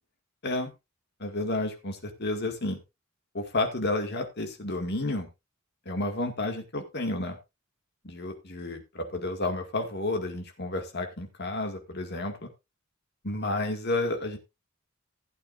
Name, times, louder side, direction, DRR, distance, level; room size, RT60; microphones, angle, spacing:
voice 1, 1.2-2.8 3.3-5.3 5.9-7.4 8.0-12.5 13.2-14.4, left 2 dB, 55° left, 5 dB, 2.2 m, -31 dB
16.0 x 8.7 x 2.6 m, 0.23 s
head